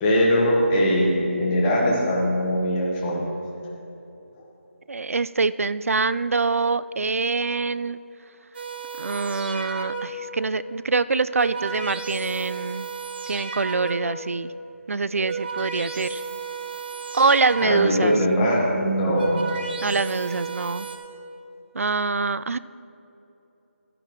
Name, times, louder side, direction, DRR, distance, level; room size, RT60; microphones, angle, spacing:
voice 1, 0.0-3.2 17.6-19.5, equal, 15° left, -4 dB, 1.3 m, -21 dB
voice 2, 4.9-8.0 9.0-12.9 13.3-14.5 14.9-16.2 17.1-18.2 19.8-20.9 21.7-22.6, right 4 dB, 80° right, 16 dB, 0.4 m, -24 dB
sound 1, 8.5-10.3 11.1-14.2 15.0-18.1 18.9-21.0, right 5 dB, 45° right, 1.3 m, -33 dB
13.5 x 9.8 x 3.1 m, 3.0 s
figure-of-eight pair, 165°, 7 cm